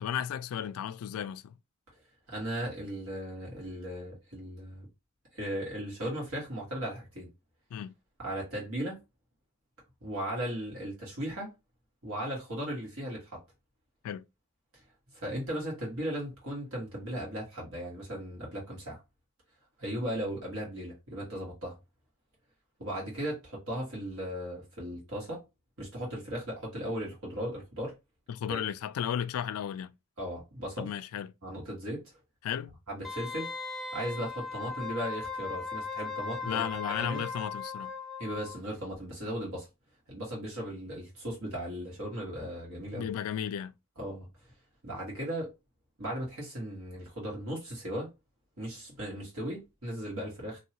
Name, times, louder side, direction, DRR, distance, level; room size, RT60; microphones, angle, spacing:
voice 1, 0.0-1.5 7.7-7.9 14.0-14.2 28.3-29.9 30.8-31.3 32.4-32.8 36.4-37.9 42.9-43.7, left 9 dB, 80° left, 0.3 m, -34 dB
voice 2, 2.3-4.9 5.3-7.3 8.2-9.0 10.0-11.5 12.0-13.4 14.7-14.8 15.1-19.0 19.8-21.8 22.8-25.4 25.8-27.9 28.5-28.6 30.2-30.9 31.4-32.0 32.9-33.5 33.9-37.2 38.2-39.7 40.1-43.1 44.0-44.3 44.8-45.5 46.0-48.1 48.6-50.6, equal, 70° right, 1.9 m, -37 dB
Wind instrument woodwind instrument, 33.0-38.6 38.9-39.0, left 4 dB, ahead, 0.4 m, -38 dB
3.0 x 2.7 x 2.9 m
head